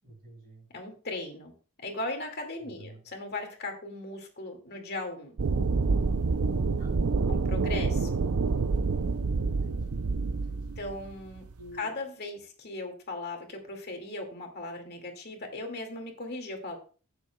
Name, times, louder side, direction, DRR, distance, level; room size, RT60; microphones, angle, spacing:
voice 1, 0.0-0.7 2.6-3.0 6.8-7.4 9.5-10.8 11.6-12.0, right 1 dB, 40° right, -1 dB, 5.6 m, -49 dB
voice 2, 0.7-1.5 1.8-5.3 7.3-8.1 10.8-11.4 11.8-16.8, left 2 dB, 45° left, 3 dB, 2.2 m, -38 dB
sound 1, 5.4-11.7, right 4 dB, 85° right, 0.6 m, -27 dB
16.0 x 7.1 x 2.3 m, 0.39 s
head